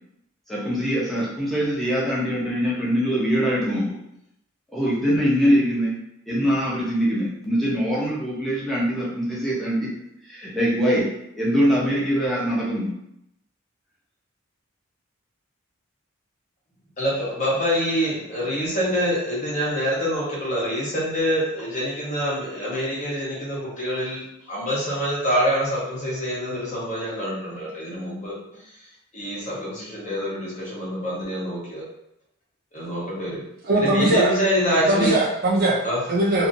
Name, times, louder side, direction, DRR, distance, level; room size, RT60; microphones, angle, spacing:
voice 1, 0.5-3.9 4.7-5.9 6.3-9.9 10.2-11.1 11.4-12.9, equal, ahead, -7 dB, 0.8 m, -23 dB
voice 2, 17.0-28.3 29.1-31.9 32.7-33.4 33.8-35.1 35.8-36.0, equal, 35° left, -6 dB, 1.0 m, -26 dB
voice 3, 33.6-34.4 34.9-35.8 36.1-36.5, right 1 dB, 45° right, -3 dB, 0.6 m, -20 dB
2.8 x 2.6 x 2.6 m, 0.79 s
head